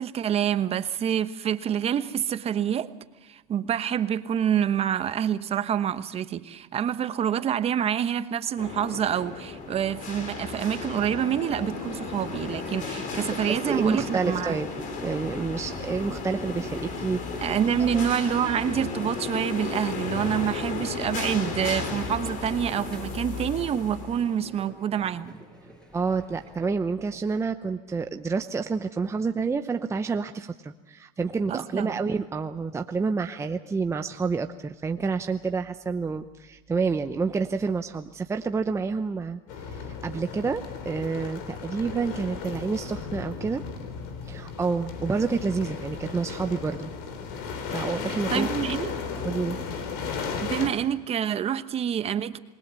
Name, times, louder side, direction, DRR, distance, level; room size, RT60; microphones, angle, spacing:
voice 1, 0.0-2.9 3.2-14.6 17.4-25.4 31.5-32.0 48.3-48.9 50.4-52.4, right 9 dB, 35° right, 1.1 m, -27 dB
sound 1, 8.6-24.6, left 4 dB, 45° left, 4.3 m, -34 dB
sound 2, 9.1-26.7, right 1 dB, 5° left, 6.3 m, -47 dB
voice 2, 13.4-14.7 15.0-17.2 17.8-17.9 25.9-43.6 44.3-46.9 47.7-48.5 49.2-49.6, right 4 dB, 15° right, 0.8 m, -29 dB
sound 3, 39.5-50.7, left 5 dB, 65° left, 4.0 m, -35 dB
27.5 x 21.0 x 7.0 m
supercardioid pair, 115°, 18 cm